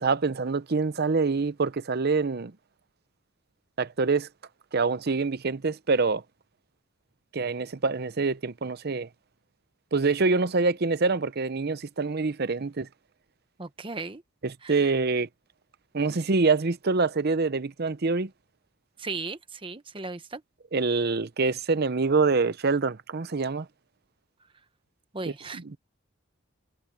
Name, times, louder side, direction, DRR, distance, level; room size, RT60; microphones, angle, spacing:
voice 1, 0.0-2.5 3.8-4.3 4.7-6.2 7.3-9.1 9.9-12.9 14.4-15.3 15.9-18.3 20.7-23.7, right 4 dB, 50° right, 0.7 m, -25 dB
voice 2, 13.6-14.2 14.6-14.9 19.0-20.4 25.1-25.8, right 3 dB, 25° right, 1.0 m, -37 dB
head